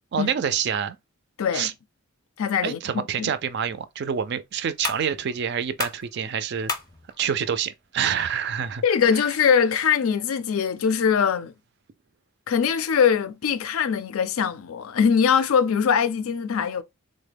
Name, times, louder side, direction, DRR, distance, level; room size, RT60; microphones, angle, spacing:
voice 1, 0.1-1.0 1.5-1.7 2.6-6.7 7.2-8.8 9.1-9.2, right 8 dB, 50° right, 0.3 m, -27 dB
voice 2, 1.4-1.7 2.4-3.3 8.8-11.5 12.5-16.8, left 7 dB, 70° left, 0.4 m, -22 dB
sound 1, 3.3-10.3, left 4 dB, 15° left, 0.5 m, -38 dB
3.7 x 2.1 x 3.3 m
head